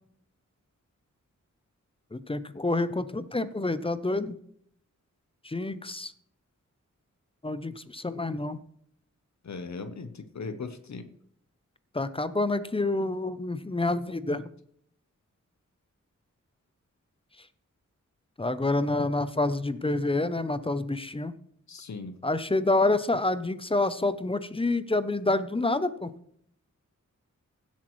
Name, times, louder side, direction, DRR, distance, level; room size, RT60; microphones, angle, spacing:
voice 1, 2.1-4.4 5.4-6.1 7.4-8.6 11.9-14.5 18.4-21.3 22.2-26.1, left 2 dB, 20° left, 14 dB, 0.5 m, -28 dB
voice 2, 9.4-11.1 21.7-22.2, left 4 dB, 65° left, 9 dB, 0.8 m, -38 dB
16.5 x 8.3 x 3.1 m, 0.67 s
wide cardioid pair, 120°, 31 cm